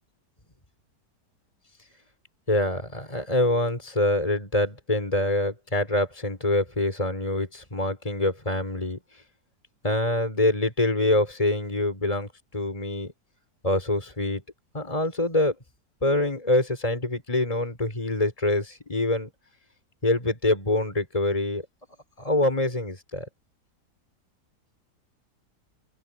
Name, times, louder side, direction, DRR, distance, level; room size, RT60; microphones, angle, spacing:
voice 1, 2.5-9.0 9.8-12.3 12.5-13.1 13.6-14.4 14.7-15.5 16.0-19.3 20.0-21.6 22.2-23.3, left 1 dB, 20° left, 4.6 m, -25 dB
open air
omnidirectional pair, 1.8 m